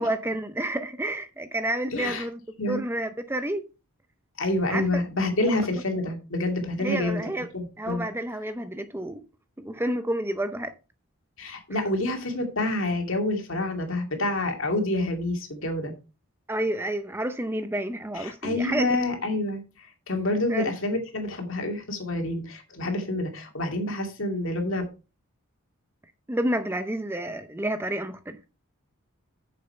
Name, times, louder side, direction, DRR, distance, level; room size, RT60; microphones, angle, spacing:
voice 1, 0.0-2.4 2.7-3.6 4.7-4.8 6.8-7.5 7.8-9.2 9.6-10.7 11.7-11.8 16.5-19.0 20.5-20.7 26.3-28.4, right 1 dB, 10° right, 0.5 m, -29 dB
voice 2, 1.9-2.3 2.6-2.8 4.4-7.2 7.5-8.0 11.4-15.9 18.1-24.8, left 2 dB, 65° left, 2.5 m, -28 dB
9.3 x 6.7 x 4.4 m
head